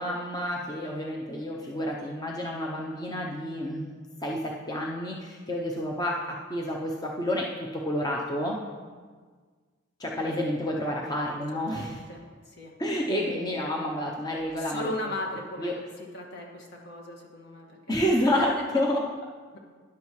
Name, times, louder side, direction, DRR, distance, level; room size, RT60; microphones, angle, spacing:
voice 1, 0.0-3.9 4.2-8.6 10.0-12.0 12.8-14.9 15.6-15.7 17.9-19.1, left 1 dB, 20° left, -1 dB, 0.8 m, -29 dB
voice 2, 11.5-12.8 14.6-15.7 16.0-18.0, left 1 dB, 55° left, 0 dB, 1.8 m, -38 dB
12.5 x 10.5 x 3.2 m, 1.5 s
head